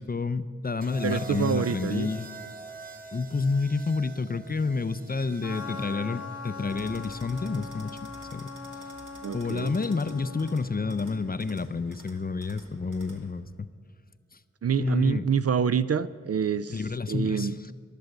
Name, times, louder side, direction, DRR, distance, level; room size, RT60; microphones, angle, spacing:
voice 1, 0.0-2.3 3.1-8.0 8.3-8.5 9.3-13.7 14.3-14.4 14.8-15.3 16.7-17.7, left 4 dB, 30° left, 14 dB, 0.5 m, -29 dB
sound 1, 0.8-8.9 10.2-10.5, right 3 dB, 30° right, 1.4 m, -46 dB
voice 2, 1.0-2.1 9.2-9.7 14.6-16.8 17.1-17.6, right 7 dB, 50° right, 15 dB, 0.4 m, -27 dB
Trumpet, 5.4-11.6, left 4 dB, 60° left, 0.9 m, -41 dB
sound 2, 6.7-13.3, right 1 dB, 85° right, 1.9 m, -51 dB
11.5 x 11.5 x 7.8 m, 2.1 s
wide cardioid pair, 80°, 31 cm